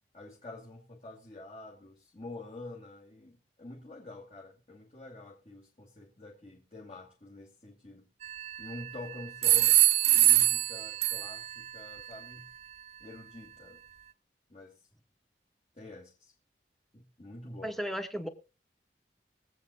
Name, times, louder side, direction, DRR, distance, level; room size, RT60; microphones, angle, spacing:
voice 1, 0.1-8.1 8.6-9.8 10.1-12.5 13.0-13.8 14.5-14.9 15.8-16.3 16.9-17.7, left 2 dB, 35° left, 2.3 m, -47 dB
sound 1, 8.2-8.9 9.4-11.6, right 12 dB, 35° right, 0.5 m, -24 dB
voice 2, 17.6-18.3, equal, ahead, 1.2 m, -34 dB
23.5 x 8.2 x 2.3 m
head